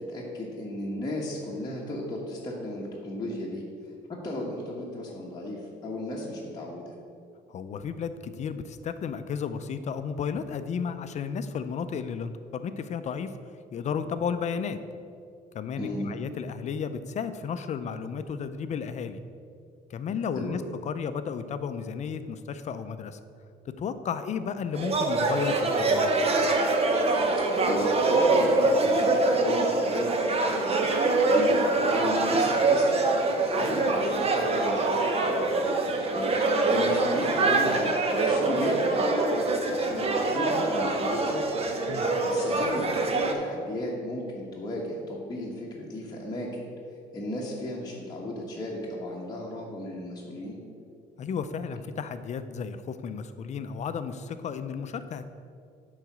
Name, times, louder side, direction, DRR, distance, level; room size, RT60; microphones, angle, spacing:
voice 1, 0.0-3.6 4.1-6.9 15.8-16.1 20.3-20.6 27.3-27.4 27.6-30.8 31.3-33.0 33.5-39.1 39.7-41.6 42.2-46.6 47.1-50.6, left 1 dB, 25° left, -4 dB, 1.2 m, -35 dB
voice 2, 7.5-13.3 13.7-14.8 15.5-19.2 19.9-23.2 23.8-26.1 41.9-42.1 51.2-55.2, left 6 dB, 45° left, 11 dB, 0.5 m, -33 dB
sound 1, 24.7-43.3, right 2 dB, 35° right, 0.9 m, -24 dB
9.2 x 4.0 x 6.0 m, 2.4 s
cardioid pair, 110°, 17 cm